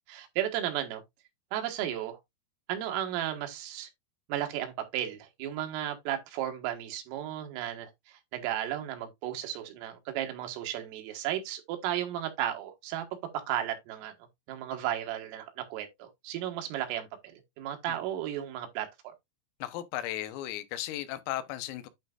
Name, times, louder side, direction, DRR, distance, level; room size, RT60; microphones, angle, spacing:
voice 1, 0.1-1.0 1.5-2.2 2.7-3.9 4.3-13.1 13.3-14.1 14.5-19.1, right 11 dB, 80° right, 4.0 m, -34 dB
voice 2, 19.6-21.9, left 13 dB, 90° left, 3.6 m, -35 dB
11.5 x 4.1 x 2.4 m
omnidirectional pair, 5.9 m